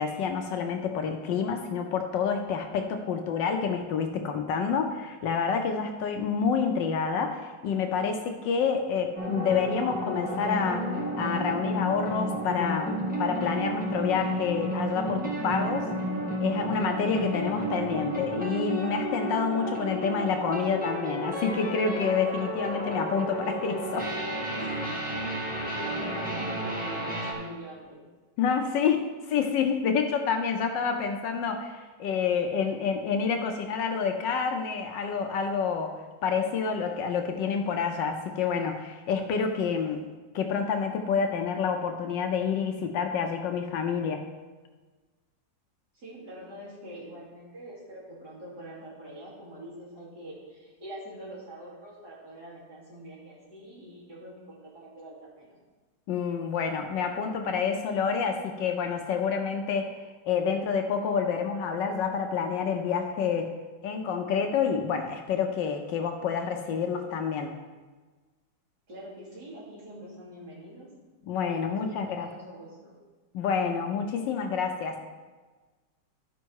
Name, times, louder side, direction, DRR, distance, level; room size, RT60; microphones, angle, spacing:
voice 1, 0.0-10.9 11.2-15.9 16.4-24.1 24.6-24.9 28.4-40.0 40.3-44.2 56.1-59.9 60.3-63.5 63.8-67.5 71.3-72.3 73.3-75.0, left 6 dB, 75° left, 5 dB, 1.3 m, -28 dB
sound 1, 9.2-27.3, right 1 dB, 5° right, 1.8 m, -32 dB
voice 2, 25.6-28.0 45.9-55.6 68.9-70.9 71.5-73.0, right 1 dB, 60° right, -6 dB, 3.3 m, -44 dB
13.0 x 5.3 x 4.6 m, 1.3 s
omnidirectional pair, 2.0 m